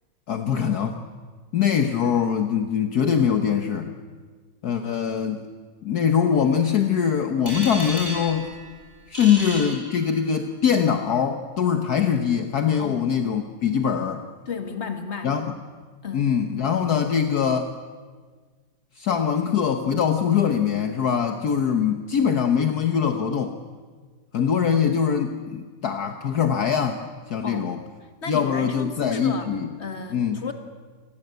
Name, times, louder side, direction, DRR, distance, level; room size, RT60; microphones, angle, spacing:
voice 1, 0.3-1.0 1.5-3.9 4.6-5.4 5.8-8.5 9.1-14.2 15.2-15.5 16.1-17.7 19.0-23.6 24.3-27.8 28.3-29.7 30.1-30.4, left 7 dB, 65° left, 6 dB, 1.7 m, -23 dB
sound 1, 7.4-10.5, equal, 25° right, 7.8 m, -34 dB
voice 2, 14.5-15.3 16.0-16.2 27.4-27.7 28.2-29.5 29.8-30.5, left 5 dB, 40° left, 7 dB, 2.3 m, -33 dB
27.5 x 20.0 x 8.1 m, 1.5 s
omnidirectional pair, 1.9 m